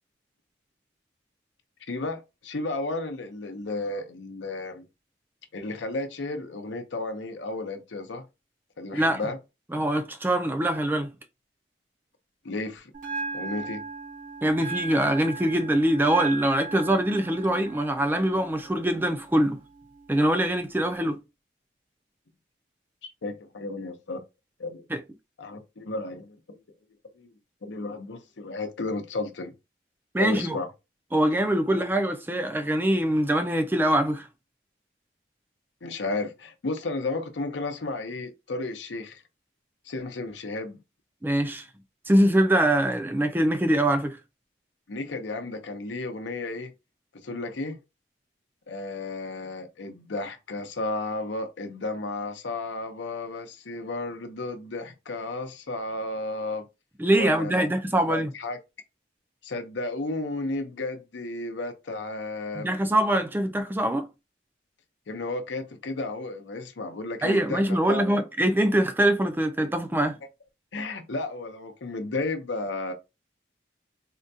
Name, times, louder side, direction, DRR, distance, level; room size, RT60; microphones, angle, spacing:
voice 1, 1.9-4.8 5.5-8.3 8.8-9.4 12.4-12.9 13.3-13.8 23.0-24.2 24.6-24.8 25.4-26.4 27.2-27.3 27.6-29.5 30.2-30.7 35.8-39.2 39.9-40.8 44.9-46.7 47.2-47.8 48.7-56.6 57.2-57.7 58.0-58.6 59.4-62.7 65.1-68.2 70.7-72.9, left 2 dB, 85° left, 0.7 m, -33 dB
voice 2, 9.7-11.1 14.4-19.6 20.1-21.2 24.9-25.0 30.1-30.6 31.1-34.3 41.2-41.6 42.1-44.2 57.0-58.3 62.5-64.1 67.2-70.2, right 1 dB, 10° right, 0.3 m, -23 dB
Bell, 12.9-20.9, right 4 dB, 45° right, 0.7 m, -38 dB
3.7 x 2.2 x 2.6 m
head